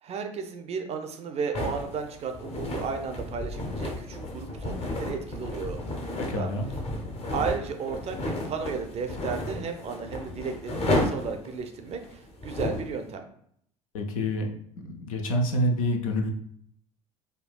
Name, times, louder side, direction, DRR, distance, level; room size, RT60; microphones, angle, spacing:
voice 1, 0.0-6.5 7.3-13.3, right 5 dB, 40° right, 6 dB, 0.5 m, -34 dB
sound 1, 1.5-12.9, left 1 dB, 35° left, 0.7 m, -33 dB
voice 2, 6.2-6.7 13.9-14.5 14.8-16.3, left 1 dB, 85° left, 4 dB, 0.5 m, -27 dB
3.5 x 2.3 x 2.2 m, 0.67 s
hypercardioid pair, 65°, 17 cm